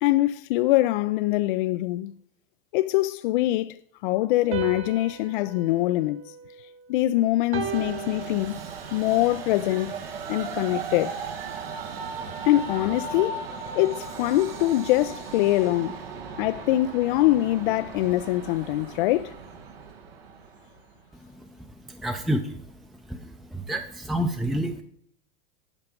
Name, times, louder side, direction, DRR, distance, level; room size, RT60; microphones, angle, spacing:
voice 1, 0.0-2.1 2.7-3.8 4.0-6.3 6.9-8.6 8.9-9.9 10.3-11.2 12.4-13.4 13.8-16.0 16.4-19.3, left 16 dB, 60° left, 0.4 m, -23 dB
sound 1, 4.5-7.0 7.5-9.1, right 7 dB, 45° right, 1.9 m, -36 dB
Train, 7.5-21.0, right 5 dB, 75° right, 1.7 m, -37 dB
voice 2, 22.0-22.6 23.1-24.8, right 1 dB, ahead, 0.6 m, -28 dB
10.5 x 5.8 x 5.1 m
hypercardioid pair, 100°, 29 cm